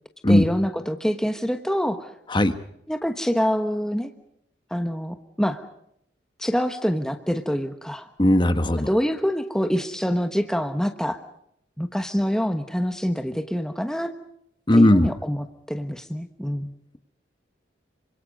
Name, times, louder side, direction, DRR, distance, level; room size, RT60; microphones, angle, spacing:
voice 1, 0.3-2.1 2.9-4.1 4.7-5.6 6.4-8.1 8.9-11.2 11.8-14.1 14.7-16.7, equal, 5° left, 6 dB, 1.2 m, -26 dB
voice 2, 8.2-8.9 14.7-15.1, left 1 dB, 25° left, 10 dB, 1.4 m, -17 dB
27.5 x 25.0 x 5.3 m, 0.74 s
head